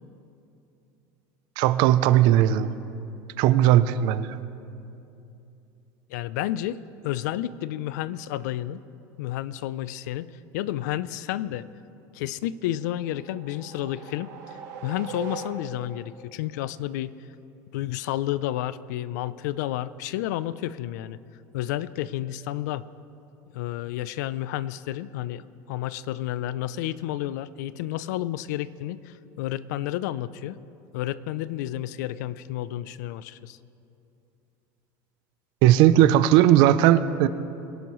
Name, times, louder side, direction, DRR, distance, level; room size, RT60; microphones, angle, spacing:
voice 1, 1.6-2.7 3.4-4.4 35.6-37.3, right 12 dB, 55° right, 14 dB, 0.5 m, -18 dB
voice 2, 6.1-8.8 9.2-11.7 12.1-17.1 17.7-21.2 21.5-22.9 23.5-30.6 30.9-33.6, left 13 dB, 90° left, 18 dB, 0.4 m, -31 dB
sound 1, 12.8-16.0, right 6 dB, 80° right, 2.4 m, -40 dB
22.5 x 11.5 x 3.1 m, 2.7 s
cardioid pair, 160°, 9 cm